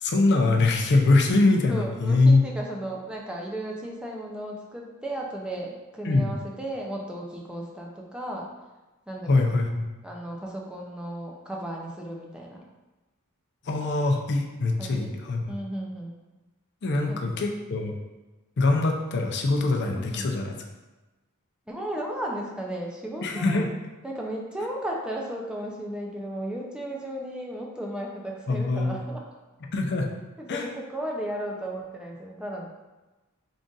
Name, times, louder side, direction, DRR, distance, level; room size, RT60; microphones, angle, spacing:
voice 1, 0.0-2.4 6.1-6.3 9.3-9.9 13.7-15.5 16.8-17.9 18.6-20.5 23.2-23.7 28.5-29.0 29.7-30.1 30.5-30.6, left 2 dB, 50° left, 3 dB, 0.5 m, -23 dB
voice 2, 1.7-8.5 9.1-9.4 10.0-12.6 14.8-15.2 15.5-16.2 17.1-17.5 19.9-20.3 21.7-23.7 24.0-29.2 30.4-32.7, right 1 dB, 5° right, -1 dB, 0.4 m, -35 dB
3.7 x 2.4 x 3.8 m, 1.1 s
head